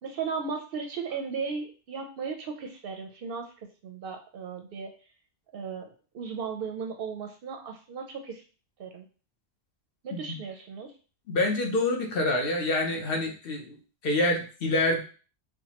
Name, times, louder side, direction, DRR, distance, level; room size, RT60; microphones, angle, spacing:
voice 1, 0.0-4.9 5.5-5.9 6.1-8.4 8.8-9.1 10.0-10.9, right 5 dB, 65° right, 4 dB, 0.7 m, -36 dB
voice 2, 11.3-15.0, left 2 dB, 60° left, 2 dB, 0.9 m, -27 dB
4.6 x 2.1 x 2.9 m, 0.37 s
omnidirectional pair, 1.1 m